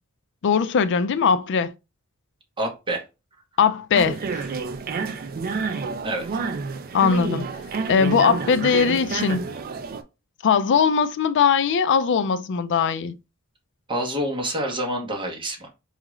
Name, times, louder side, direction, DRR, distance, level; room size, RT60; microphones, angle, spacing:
voice 1, 0.4-1.7 3.6-4.4 6.9-7.5 7.9-9.5 10.4-13.1, left 6 dB, 55° left, 0.4 m, -20 dB
voice 2, 2.6-3.0 6.0-6.3 13.9-15.7, right 1 dB, 25° right, 1.1 m, -27 dB
sound 1, 3.9-10.0, right 4 dB, 40° right, 0.4 m, -29 dB
4.6 x 2.4 x 3.1 m
head